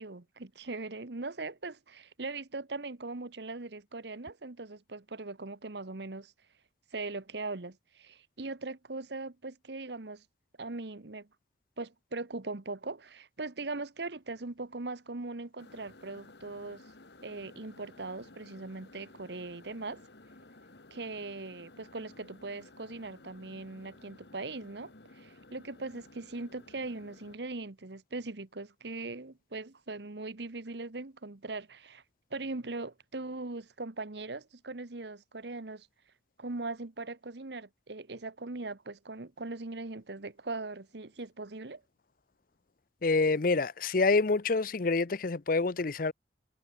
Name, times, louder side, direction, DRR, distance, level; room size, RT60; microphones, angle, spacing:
voice 1, 0.0-6.3 6.9-10.2 10.6-11.3 11.8-16.8 17.2-20.0 20.9-32.0 32.3-35.9 36.4-41.8, right 3 dB, 65° right, 1.2 m, -40 dB
sound 1, 15.6-27.4, left 2 dB, 65° left, 1.8 m, -55 dB
voice 2, 43.0-46.1, left 3 dB, 50° left, 0.6 m, -27 dB
head